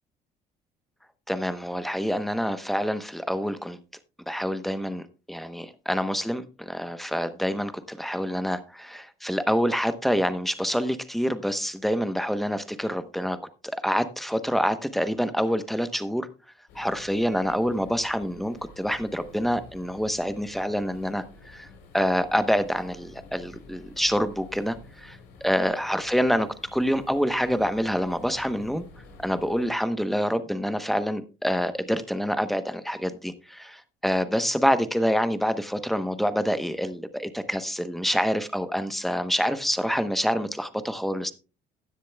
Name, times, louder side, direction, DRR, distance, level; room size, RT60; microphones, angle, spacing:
voice 1, 1.3-3.8 4.3-13.4 13.6-16.3 16.7-21.7 21.9-28.9 29.2-41.3, equal, ahead, 0.9 m, -27 dB
sound 1, 16.7-29.7, left 2 dB, 90° left, 3.6 m, -50 dB
15.0 x 10.0 x 2.3 m
cardioid pair, 110°, 17 cm